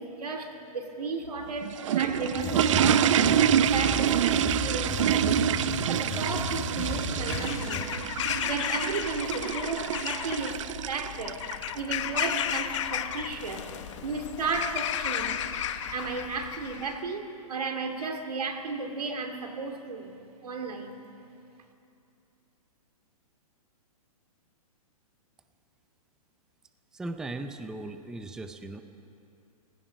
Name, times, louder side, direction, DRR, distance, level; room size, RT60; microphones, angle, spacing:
voice 1, 0.0-5.5 5.9-7.9 8.4-11.4 11.7-13.7 14.0-15.5 15.9-21.1, right 4 dB, 85° right, 5 dB, 2.7 m, -34 dB
sound 1, 1.5-11.8, right 10 dB, 55° right, 0.5 m, -27 dB
sound 2, 2.4-7.8, left 3 dB, 15° left, 3.2 m, -34 dB
Bird vocalization bird call bird song / Crow, 7.1-17.0, left 9 dB, 50° left, 1.2 m, -33 dB
voice 2, 26.9-28.8, right 2 dB, 5° right, 8 dB, 0.5 m, -37 dB
30.0 x 16.5 x 5.3 m, 2.6 s
hypercardioid pair, 155°, 19 cm